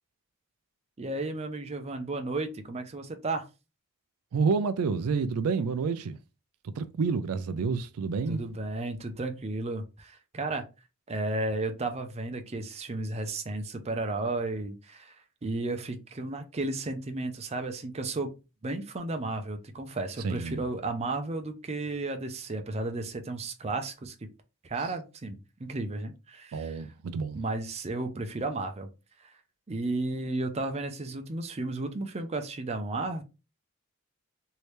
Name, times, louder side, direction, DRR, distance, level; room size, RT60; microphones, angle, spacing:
voice 1, 1.0-3.5 8.3-10.6 11.1-15.1 15.4-18.3 18.6-24.1 24.6-26.8 27.3-28.9 29.2-29.3 29.7-33.2, right 2 dB, 30° right, 0.5 m, -33 dB
voice 2, 4.3-6.2 6.6-8.4 20.2-20.6 26.5-27.4, right 5 dB, 85° right, 0.4 m, -29 dB
3.2 x 2.7 x 3.1 m
head